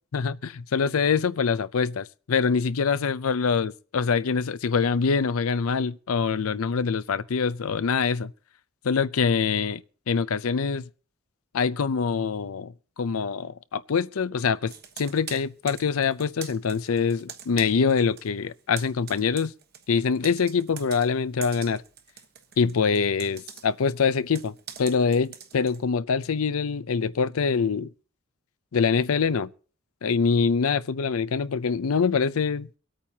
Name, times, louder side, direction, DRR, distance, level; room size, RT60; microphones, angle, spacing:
voice 1, 0.1-8.3 8.8-9.8 10.1-10.9 11.5-19.5 19.9-21.8 22.6-27.9 28.7-29.5 30.0-32.7, left 5 dB, 80° left, 0.5 m, -24 dB
Computer keyboard, 14.7-18.3 18.6-25.8, right 8 dB, 45° right, 1.2 m, -44 dB
24.5 x 8.8 x 2.8 m
head